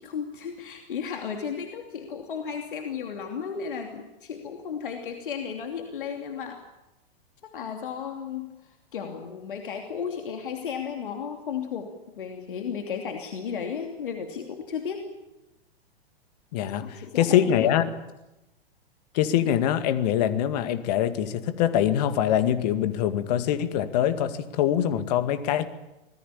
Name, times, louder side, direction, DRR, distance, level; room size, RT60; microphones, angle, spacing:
voice 1, 0.0-6.6 7.4-15.1 16.8-17.7, left 7 dB, 60° left, 4 dB, 2.9 m, -34 dB
voice 2, 16.5-17.9 19.1-25.7, left 10 dB, 40° left, 11 dB, 2.1 m, -24 dB
26.0 x 19.5 x 8.8 m, 0.97 s
figure-of-eight pair, 105°, 30 cm